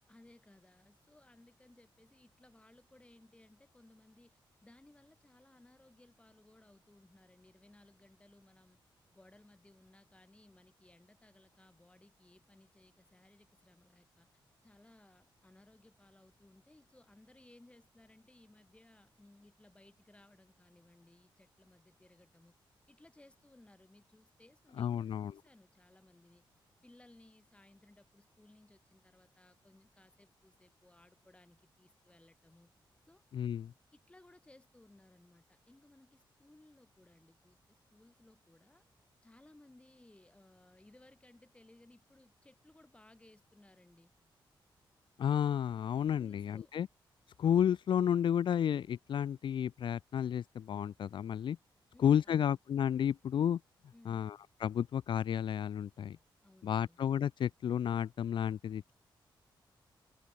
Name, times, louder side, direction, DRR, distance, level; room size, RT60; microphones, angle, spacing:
voice 1, 0.1-8.8 9.1-14.3 14.6-22.6 22.9-26.5 26.8-32.7 33.0-33.2 33.9-38.8 39.2-44.1 46.2-46.7 51.9-52.6 53.9-54.3 56.4-57.0, left 2 dB, 15° left, 7.6 m, -62 dB
voice 2, 24.8-25.3 33.3-33.7 45.2-46.9 47.4-51.6 52.0-53.6 54.1-56.2 56.6-58.9, left 9 dB, 65° left, 0.5 m, -32 dB
open air
wide cardioid pair, 115°, 9 cm